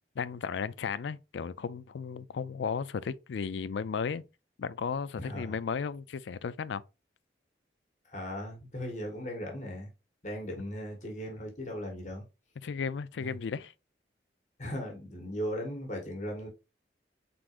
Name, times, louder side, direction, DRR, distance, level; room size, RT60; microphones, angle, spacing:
voice 1, 0.0-4.2 4.6-6.8 12.6-13.7, left 6 dB, 80° left, 0.4 m, -35 dB
voice 2, 5.2-5.5 8.1-9.9 10.2-12.2 13.2-13.3 14.6-16.5, equal, 40° left, 1.5 m, -37 dB
4.7 x 3.8 x 2.5 m
head